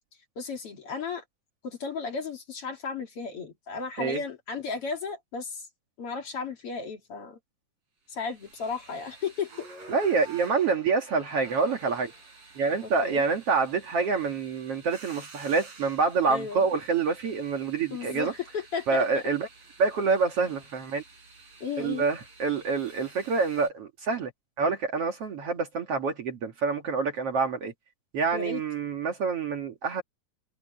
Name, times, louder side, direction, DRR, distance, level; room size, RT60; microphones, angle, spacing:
voice 1, 0.4-1.2 1.6-5.7 6.0-7.4 8.1-9.7 12.8-13.2 16.3-16.7 17.9-19.2 21.6-22.0 28.3-28.6, left 5 dB, 45° left, 2.9 m, -34 dB
sound 1, 8.2-23.7, right 4 dB, 80° right, 8.4 m, -51 dB
voice 2, 9.9-12.1 12.6-18.3 18.9-19.5 19.8-21.0 21.8-24.3 24.6-27.7 28.1-30.0, right 4 dB, 50° right, 2.4 m, -27 dB
omnidirectional pair, 3.9 m